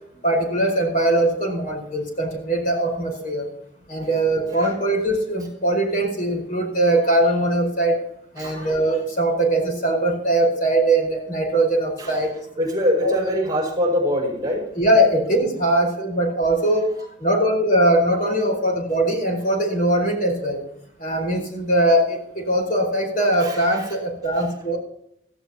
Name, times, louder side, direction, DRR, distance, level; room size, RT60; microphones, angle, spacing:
voice 1, 0.2-3.5 3.9-8.0 8.3-12.3 13.0-13.1 14.7-16.9 17.2-20.6 21.0-22.2 22.5-24.8, right 1 dB, 45° left, 1 dB, 5.0 m, -21 dB
voice 2, 12.6-14.7 23.4-23.6, equal, 20° right, 0 dB, 5.4 m, -23 dB
17.0 x 15.5 x 2.9 m, 0.73 s
head